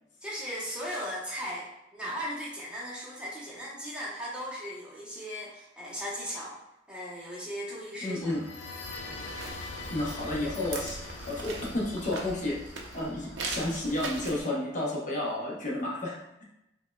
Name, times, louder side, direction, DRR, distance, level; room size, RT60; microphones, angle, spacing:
voice 1, 0.2-6.5 6.9-8.3, equal, 5° right, -7 dB, 0.8 m, -37 dB
voice 2, 8.0-8.5 9.9-16.4, left 1 dB, 45° left, -4 dB, 0.7 m, -32 dB
sound 1, 8.1-13.9, left 3 dB, 90° left, 0.5 m, -43 dB
sound 2, 8.8-14.4, right 3 dB, 75° right, 0.6 m, -40 dB
5.2 x 2.2 x 2.2 m, 0.87 s
head